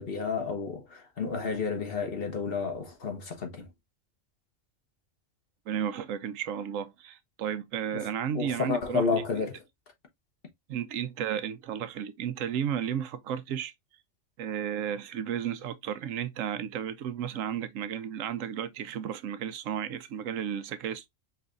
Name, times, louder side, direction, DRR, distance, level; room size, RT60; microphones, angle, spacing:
voice 1, 0.0-3.7 8.3-9.6, left 5 dB, 50° left, 1.2 m, -31 dB
voice 2, 5.7-9.4 10.7-13.7 14.4-21.1, right 9 dB, 80° right, 1.0 m, -33 dB
5.5 x 3.3 x 2.5 m
omnidirectional pair, 1.3 m